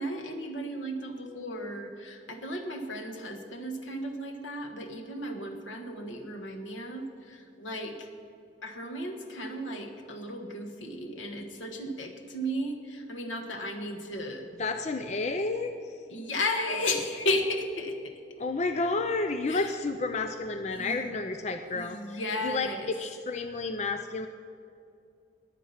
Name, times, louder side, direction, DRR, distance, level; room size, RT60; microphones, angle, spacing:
voice 1, 0.0-8.1 8.6-14.5 16.1-18.1 19.5-19.7 20.7-21.0 21.7-22.9, left 1 dB, 85° left, 5 dB, 1.5 m, -34 dB
voice 2, 14.6-15.9 18.4-24.3, left 3 dB, 35° left, 7 dB, 0.5 m, -31 dB
20.5 x 7.5 x 5.8 m, 2.5 s
head